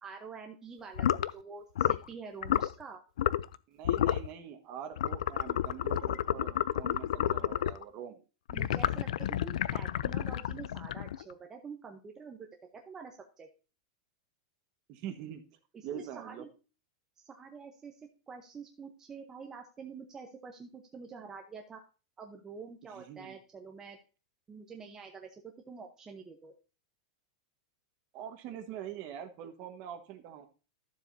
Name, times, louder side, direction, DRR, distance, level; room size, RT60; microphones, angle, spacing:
voice 1, 0.0-3.0 8.5-13.5 15.7-16.5 17.2-18.0 18.3-21.8 22.2-24.0 24.5-25.4 25.7-26.5, right 5 dB, 15° right, 2 dB, 0.8 m, -47 dB
sound 1, 1.0-1.3 1.8-2.1 2.4-2.7 3.2-3.6 3.8-4.3 5.0-7.8 8.5-11.3, left 11 dB, 85° left, 0.4 m, -30 dB
voice 2, 3.7-8.2 14.9-15.4 15.8-16.5 22.9-23.4 28.1-30.5, right 9 dB, 40° right, 8 dB, 1.4 m, -44 dB
12.5 x 7.3 x 2.7 m, 0.33 s
supercardioid pair, 160°, 4 cm